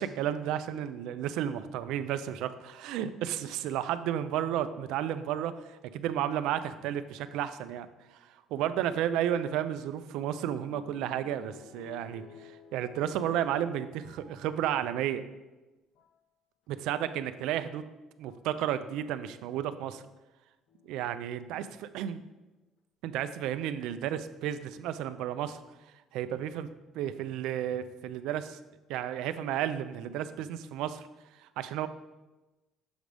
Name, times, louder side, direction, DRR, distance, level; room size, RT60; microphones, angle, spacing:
voice 1, 0.0-7.9 8.2-15.2 16.7-17.8 18.2-20.0 20.8-22.2 23.0-25.6 26.1-26.7 26.9-28.6 28.9-31.1 31.4-31.9, right 10 dB, 80° right, 12 dB, 0.4 m, -32 dB
sound 1, 9.4-15.0 15.8-16.2 17.4-17.5 18.2-18.6 20.7-21.3 22.0-22.1 22.3-22.4, left 7 dB, 75° left, 0.8 m, -55 dB
7.1 x 3.3 x 5.2 m, 1.1 s
cardioid pair, 110°, 0 cm